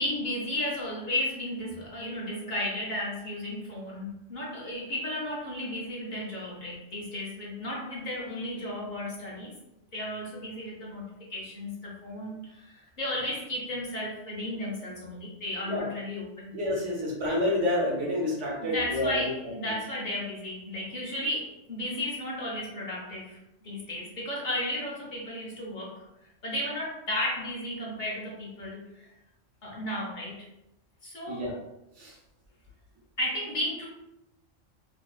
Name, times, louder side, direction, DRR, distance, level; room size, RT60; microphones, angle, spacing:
voice 1, 0.0-9.5 9.9-16.9 18.6-26.0 26.4-29.1 29.6-30.4 31.0-31.5 33.2-33.9, left 1 dB, 45° left, -4 dB, 0.7 m, -34 dB
voice 2, 16.5-19.3 31.3-31.5 32.0-32.1, left 1 dB, 70° right, -3 dB, 1.1 m, -28 dB
2.6 x 2.3 x 2.3 m, 0.89 s
omnidirectional pair, 1.3 m